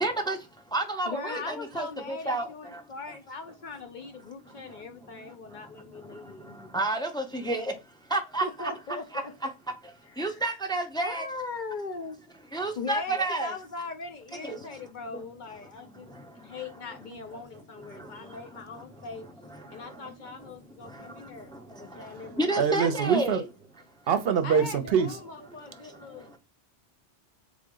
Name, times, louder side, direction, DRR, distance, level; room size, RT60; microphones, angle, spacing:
voice 1, 0.0-0.4 0.7-2.5 6.7-7.7 8.1-8.7 10.2-11.3 12.5-13.5 14.4-14.6 22.4-23.4, right 2 dB, 5° left, 0.5 m, -29 dB
voice 2, 1.1-6.6 8.4-9.3 10.2-10.4 11.0-12.2 12.7-19.3 19.7-23.3 24.4-26.3, left 4 dB, 55° left, 0.6 m, -40 dB
voice 3, 22.6-23.4 24.1-25.2, right 7 dB, 65° right, 0.8 m, -24 dB
3.8 x 3.4 x 3.7 m
omnidirectional pair, 1.1 m